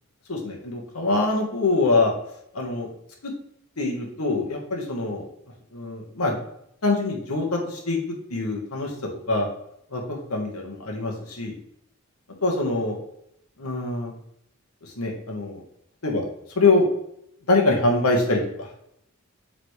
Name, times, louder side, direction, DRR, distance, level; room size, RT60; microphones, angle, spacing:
voice 1, 0.3-2.1 2.5-2.9 3.2-3.3 3.8-5.3 5.7-6.4 6.8-8.0 8.3-8.9 9.3-9.5 9.9-11.5 12.4-13.0 13.6-14.1 14.8-15.6 16.0-16.2 16.6-16.9 17.5-18.7, left 2 dB, 90° left, 1 dB, 1.5 m, -24 dB
8.1 x 4.0 x 3.3 m, 0.75 s
head